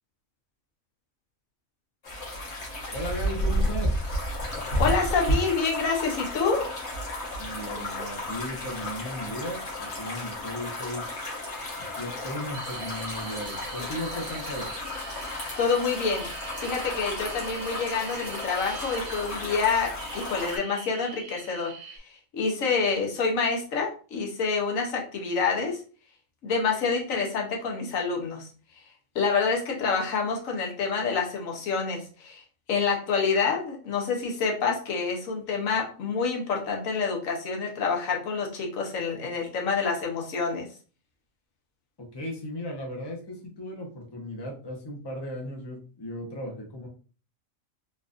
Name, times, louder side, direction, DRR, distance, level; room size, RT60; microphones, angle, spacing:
sound 1, 2.0-20.6, equal, 60° left, 1.5 m, -32 dB
voice 1, 2.9-4.0 7.4-11.0 11.8-14.7 42.0-46.9, equal, 25° left, 0 dB, 0.7 m, -36 dB
voice 2, 4.8-6.7 15.6-16.3 16.6-25.8 26.4-28.5 29.1-32.4 32.7-40.7, left 5 dB, 85° left, 0 dB, 1.3 m, -27 dB
sound 2, 11.5-22.0, right 6 dB, 70° right, 0.9 m, -43 dB
4.0 x 2.4 x 2.5 m, 0.39 s
omnidirectional pair, 1.4 m